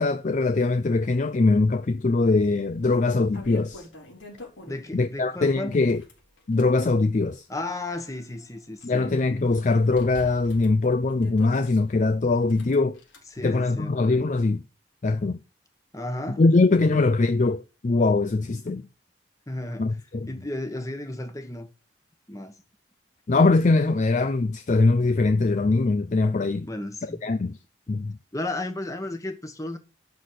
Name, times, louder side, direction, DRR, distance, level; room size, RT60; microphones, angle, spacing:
voice 1, 0.0-3.9 4.9-6.0 6.5-7.4 8.8-13.0 13.4-14.6 15.0-15.4 16.4-18.8 19.8-20.3 23.3-26.7 27.2-27.6 27.9-28.2, left 3 dB, 40° left, 0.4 m, -22 dB
sound 1, 2.4-2.5 3.0-5.1 5.7-6.8 7.4-8.8 9.2-9.3 9.9-11.8 12.4-13.2, left 1 dB, 75° left, 3.9 m, -45 dB
voice 2, 4.6-5.8 7.5-9.1 13.3-14.3 15.9-16.4 16.9-17.2 19.5-19.9 20.3-21.7 22.3-22.5 26.6-27.2 28.3-29.8, left 2 dB, 15° left, 1.3 m, -34 dB
11.5 x 4.2 x 7.8 m
head